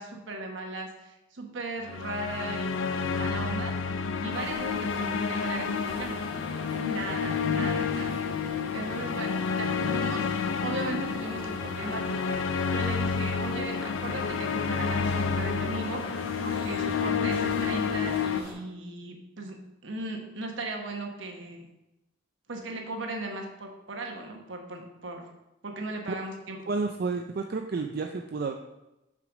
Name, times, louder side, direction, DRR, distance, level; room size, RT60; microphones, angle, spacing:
voice 1, 0.0-3.8 4.2-6.3 6.8-8.3 8.7-10.3 10.6-21.7 22.5-25.3 25.6-26.7, right 2 dB, 75° right, 2 dB, 1.2 m, -37 dB
sound 1, 1.9-18.4, left 5 dB, 85° left, 0.4 m, -30 dB
sound 2, 4.3-18.5, left 2 dB, 10° right, 2.8 m, -42 dB
voice 2, 26.7-28.5, right 4 dB, 55° right, 4 dB, 0.4 m, -30 dB
6.6 x 5.0 x 5.0 m, 0.94 s
head